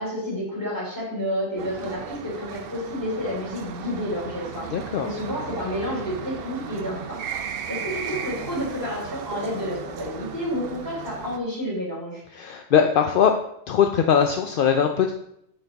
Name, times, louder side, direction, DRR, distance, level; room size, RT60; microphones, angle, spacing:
voice 1, 0.0-4.7 5.0-12.2, left 1 dB, 15° left, -6 dB, 3.3 m, -30 dB
sound 1, 1.6-11.4, right 7 dB, 60° right, 0.7 m, -36 dB
voice 2, 4.7-5.1 12.3-13.3 13.7-15.1, left 8 dB, 60° left, 5 dB, 0.6 m, -20 dB
7.3 x 5.7 x 3.9 m, 0.76 s
omnidirectional pair, 1.3 m